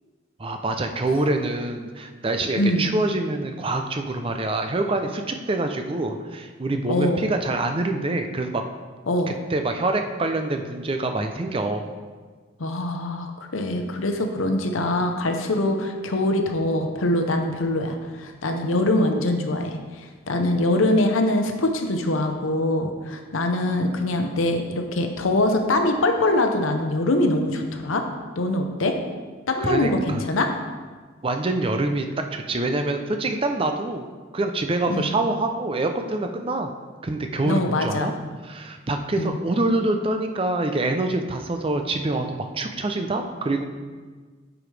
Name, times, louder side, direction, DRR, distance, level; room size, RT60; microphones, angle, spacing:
voice 1, 0.4-8.6 9.3-11.9 29.6-30.2 31.2-34.1 34.3-36.7 37.0-38.1 38.4-43.6, right 2 dB, 30° right, 5 dB, 0.5 m, -25 dB
voice 2, 2.6-2.9 6.9-7.2 9.1-9.3 12.6-19.8 20.3-28.0 28.4-28.9 29.5-30.5 34.9-35.1 37.4-38.1 39.2-39.4, left 1 dB, 90° left, 5 dB, 0.7 m, -23 dB
8.8 x 4.9 x 3.3 m, 1.4 s
head